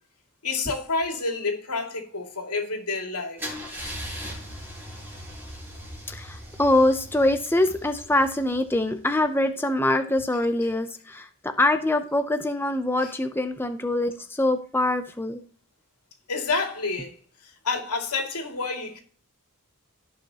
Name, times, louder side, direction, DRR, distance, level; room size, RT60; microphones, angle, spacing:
voice 1, 0.4-3.4 13.0-13.1 16.3-17.2 17.6-19.0, left 3 dB, 90° left, 2.6 m, -29 dB
Car / Engine starting / Idling, 3.4-9.2, equal, 10° right, 4.0 m, -39 dB
voice 2, 6.1-15.4, left 1 dB, 10° left, 0.6 m, -24 dB
17.0 x 5.6 x 3.0 m
head